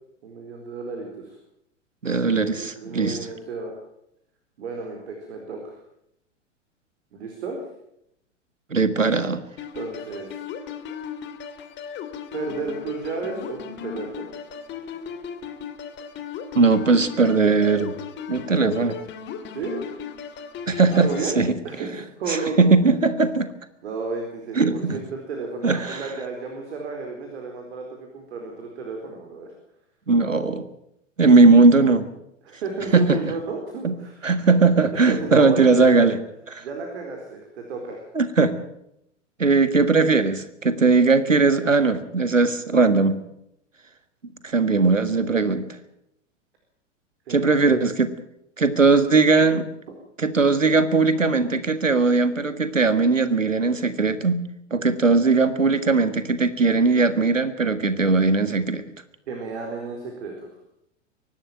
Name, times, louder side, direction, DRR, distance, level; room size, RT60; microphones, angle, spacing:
voice 1, 0.2-1.4 2.4-3.7 4.6-5.8 7.1-7.6 9.7-10.4 12.3-14.3 19.5-19.8 20.9-21.4 21.6-22.7 23.8-29.5 32.4-34.3 34.9-36.2 36.6-38.1 47.3-47.8 59.3-60.5, right 4 dB, 60° right, 2 dB, 4.5 m, -33 dB
voice 2, 2.0-3.2 8.7-9.4 16.5-17.9 18.3-19.0 20.7-21.1 21.3-21.5 22.3-23.5 24.6-25.0 25.6-26.1 30.1-30.6 31.2-32.1 32.9-33.2 33.8-33.9 34.2-36.2 36.6-36.7 38.1-38.5 39.4-43.2 44.4-45.7 47.3-48.1 48.6-49.7 50.2-54.4 54.7-58.8, right 3 dB, 85° right, 13 dB, 1.7 m, -19 dB
sound 1, 9.6-21.3, left 7 dB, 30° left, 2.3 m, -37 dB
24.0 x 12.0 x 9.3 m, 0.79 s
figure-of-eight pair, 95°, 37 cm